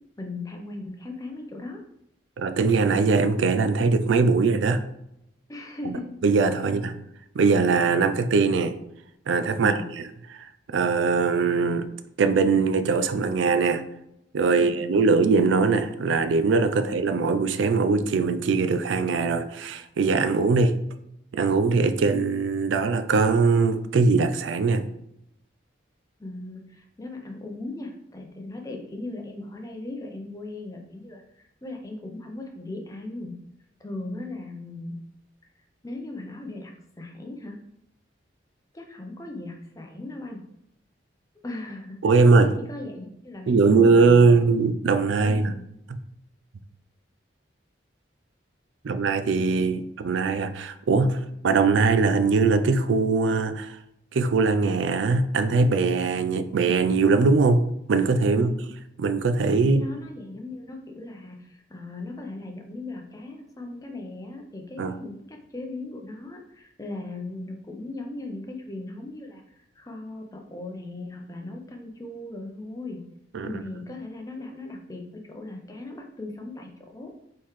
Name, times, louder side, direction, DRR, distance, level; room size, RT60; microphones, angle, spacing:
voice 1, 0.2-1.8 5.5-6.0 6.6-6.9 9.5-9.9 14.5-14.8 16.8-16.9 26.2-33.3 33.8-35.0 35.8-37.6 38.7-40.4 41.4-44.4 45.2-45.8 58.2-58.7 59.7-73.0 73.4-77.1, left 2 dB, 20° left, 0.6 m, -38 dB
voice 2, 2.4-4.8 6.2-6.9 7.3-8.8 9.3-10.1 10.7-11.9 12.2-13.8 14.3-20.7 21.3-24.8 42.0-42.5 43.5-45.5 48.8-53.8 54.1-57.6 57.9-58.6 59.0-59.8 64.8-64.9 73.3-73.6, right 4 dB, 80° right, 0.4 m, -21 dB
4.2 x 3.8 x 3.1 m
head